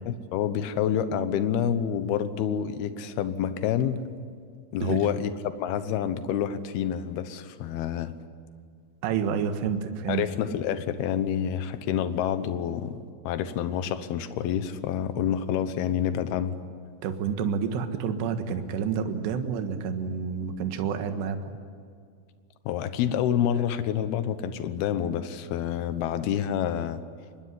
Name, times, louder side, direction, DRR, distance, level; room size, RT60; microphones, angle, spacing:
voice 1, 0.1-4.0 4.7-8.1 10.1-13.0 13.2-16.6 22.7-27.0, left 9 dB, 70° left, 11 dB, 2.6 m, -28 dB
voice 2, 9.0-10.2 17.0-21.4, right 7 dB, 70° right, 7 dB, 3.5 m, -29 dB
25.0 x 21.0 x 9.9 m, 2.1 s
omnidirectional pair, 5.6 m